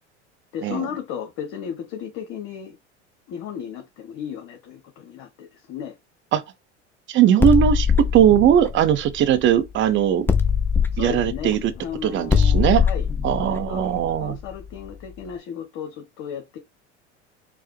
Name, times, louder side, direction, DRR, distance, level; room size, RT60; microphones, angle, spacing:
voice 1, 0.5-2.8 3.3-5.9 10.9-13.1 13.4-13.9 14.2-16.6, left 8 dB, 50° left, 0.8 m, -34 dB
voice 2, 7.1-10.3 11.0-11.7 12.0-12.8 13.2-14.4, right 10 dB, 35° right, 0.6 m, -19 dB
sound 1, 7.4-9.8 10.3-14.9, left 6 dB, 5° left, 0.4 m, -22 dB
4.5 x 2.0 x 3.1 m
hypercardioid pair, 75°, 36 cm